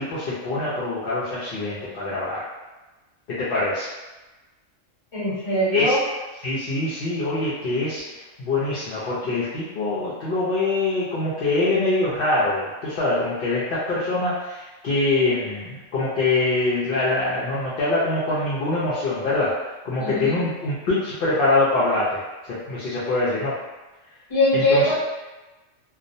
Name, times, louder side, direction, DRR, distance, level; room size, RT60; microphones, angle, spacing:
voice 1, 0.0-2.4 3.4-3.9 5.7-5.9 6.4-8.0 8.4-19.5 19.8-23.5 24.5-24.9, left 2 dB, 55° left, -9 dB, 0.6 m, -24 dB
voice 2, 5.1-6.0 20.0-20.4 24.3-24.9, left 1 dB, 25° left, -10 dB, 0.9 m, -21 dB
2.4 x 2.0 x 2.6 m, 1.1 s
omnidirectional pair, 1.4 m